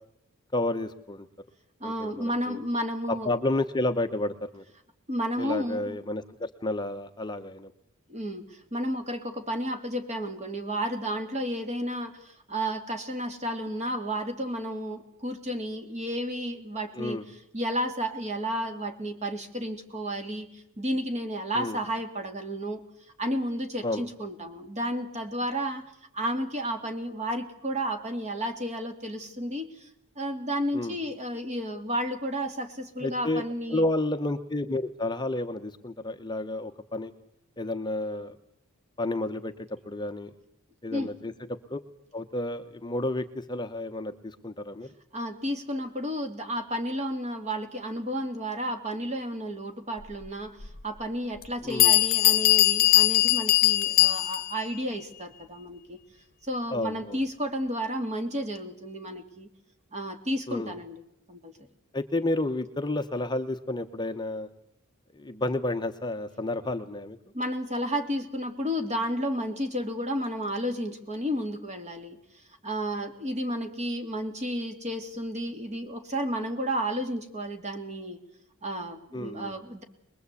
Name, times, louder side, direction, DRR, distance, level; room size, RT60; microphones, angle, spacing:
voice 1, 0.5-1.3 1.8-2.6 3.2-4.6 5.4-7.7 16.9-17.2 21.5-21.8 23.8-24.0 30.7-30.9 33.0-33.4 33.7-37.1 37.6-38.4 39.0-40.3 40.8-41.3 41.7-41.8 42.1-44.9 51.6-51.9 56.7-57.2 60.5-60.7 61.9-64.5 65.1-67.2 79.1-79.5, left 2 dB, 20° left, 7 dB, 0.9 m, -31 dB
voice 2, 1.8-3.3 5.1-6.0 8.1-17.2 17.5-22.8 23.2-25.8 26.1-29.9 30.2-33.8 40.9-41.1 45.1-56.0 56.4-59.5 59.9-61.0 61.3-61.5 67.3-72.2 72.6-78.2 78.6-79.8, equal, 30° right, 5 dB, 2.7 m, -32 dB
Bell, 50.6-50.7 51.4-51.5 51.8-54.6, left 15 dB, 45° left, 1.1 m, -21 dB
23.0 x 21.5 x 8.4 m, 0.76 s
head